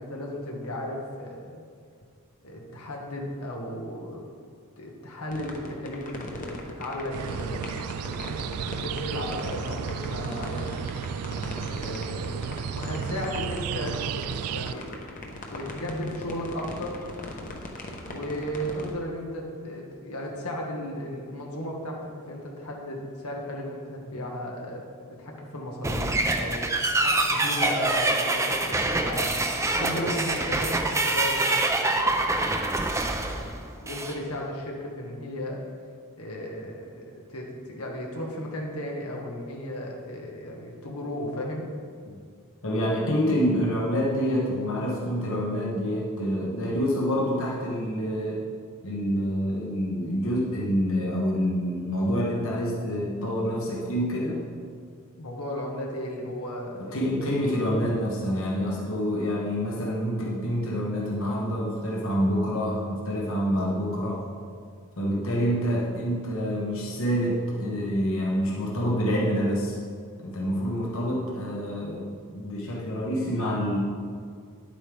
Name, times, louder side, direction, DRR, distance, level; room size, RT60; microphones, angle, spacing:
voice 1, 0.0-1.6 2.4-4.3 4.8-10.8 11.6-14.2 14.5-14.9 15.2-17.0 18.0-24.8 25.2-32.4 33.2-35.6 36.2-41.7 55.2-57.3, equal, 90° left, -1 dB, 1.6 m, -35 dB
sound 1, 5.3-18.9, left 2 dB, 40° left, 1.0 m, -39 dB
sound 2, 7.1-14.7, right 7 dB, 75° right, 0.3 m, -33 dB
sound 3, 25.8-34.2, right 2 dB, 15° right, 0.6 m, -25 dB
voice 2, 42.6-48.5 48.8-54.4 56.7-64.2 65.0-69.8 70.2-73.8, equal, 65° left, -4 dB, 1.3 m, -27 dB
10.5 x 8.4 x 3.4 m, 2.1 s
head